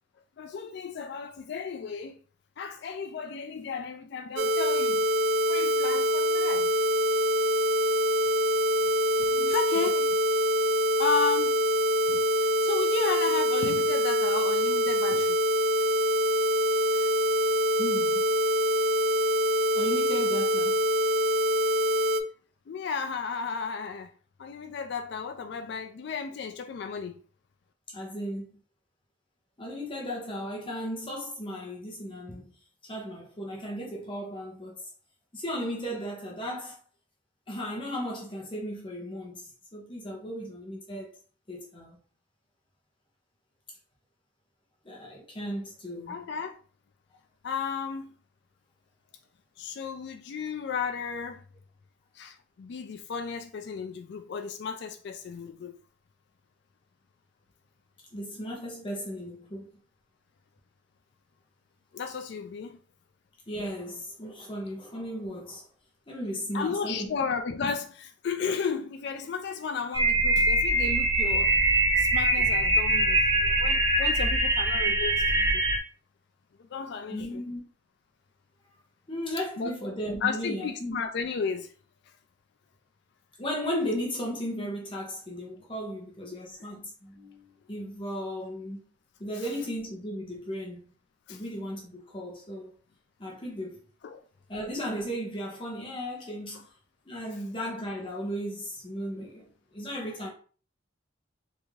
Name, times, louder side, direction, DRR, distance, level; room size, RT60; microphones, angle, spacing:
voice 1, 0.4-2.2 2.6-5.0 5.5-6.7 9.2-10.2 11.0-11.6 12.1-12.2 12.6-15.4 16.9-17.1 22.7-24.1 24.4-27.2 46.1-46.6 47.4-48.2 49.6-51.4 52.1-55.8 61.9-62.8 66.5-71.6 72.0-75.6 76.7-77.3 79.6-79.7 80.2-81.7 91.3-91.4 94.0-94.2, left 5 dB, 60° left, 0.3 m, -33 dB
sound 1, 4.4-22.2, equal, 85° right, 0.4 m, -25 dB
voice 2, 17.8-18.3 19.7-20.9 27.9-28.6 29.6-32.5 32.8-34.9 35.3-36.8 37.5-41.1 41.5-42.0 44.8-46.2 58.1-59.8 63.5-65.6 66.1-67.1 77.1-77.6 79.1-80.9 83.4-88.9 89.2-90.8 91.3-92.7 93.2-93.8 94.5-96.6 97.1-100.3, equal, 25° left, 0.8 m, -36 dB
sound 2, 69.9-75.8, right 2 dB, 20° right, 0.5 m, -23 dB
3.5 x 2.6 x 3.1 m
head